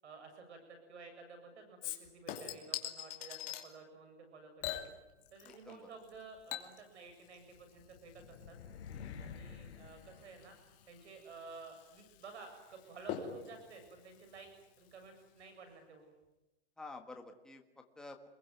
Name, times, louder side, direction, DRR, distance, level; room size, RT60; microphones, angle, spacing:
voice 1, 0.0-4.9 5.3-8.6 9.2-10.6 10.9-14.5 14.8-16.1, right 4 dB, 75° right, 6 dB, 7.7 m, -53 dB
Chink clink / Liquid, 1.8-3.7 4.6-5.8 6.0-15.1 15.4-15.5, left 11 dB, 25° left, 2.8 m, -46 dB
voice 2, 5.4-5.9 8.9-9.2 16.8-18.3, left 3 dB, ahead, 3 dB, 1.4 m, -51 dB
sound 1, 7.5-11.0, left 6 dB, 65° left, 3.8 m, -50 dB
27.5 x 22.0 x 9.4 m, 1.0 s
hypercardioid pair, 170°, 34 cm